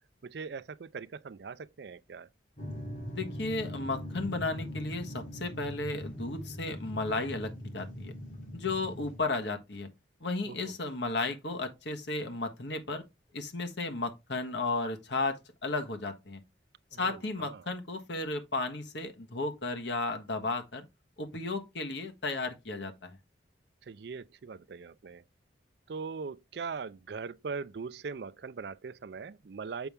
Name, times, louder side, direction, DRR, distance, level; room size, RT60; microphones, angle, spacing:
voice 1, 0.2-2.3 10.4-10.8 16.9-17.6 23.8-25.2 25.9-29.9, right 5 dB, 65° right, 0.4 m, -41 dB
sound 1, 2.6-9.2, equal, 45° left, 1.4 m, -41 dB
voice 2, 3.1-8.1 8.5-9.9 10.2-13.0 13.3-16.4 17.0-20.8 21.2-23.2, left 3 dB, 75° left, 1.4 m, -34 dB
6.9 x 5.5 x 3.4 m
head